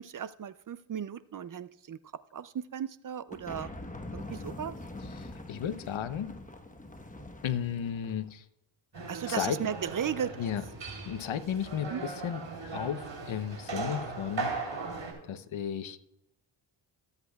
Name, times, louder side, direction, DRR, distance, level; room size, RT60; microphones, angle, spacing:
voice 1, 0.0-2.0 2.3-3.7 4.1-4.8 9.1-10.3 11.9-12.0, right 8 dB, 45° right, 16 dB, 0.5 m, -35 dB
sound 1, 3.3-8.3, left 1 dB, 15° left, 1.1 m, -44 dB
voice 2, 5.0-6.3 7.4-8.4 9.0-9.6 10.4-10.6 11.1-12.4 12.7-14.5 15.2-16.0, left 9 dB, 70° left, 13 dB, 0.8 m, -34 dB
sound 2, 8.9-15.1, right 3 dB, 60° right, 3.4 m, -38 dB
18.5 x 8.2 x 2.3 m, 0.87 s
cardioid pair, 55°, 49 cm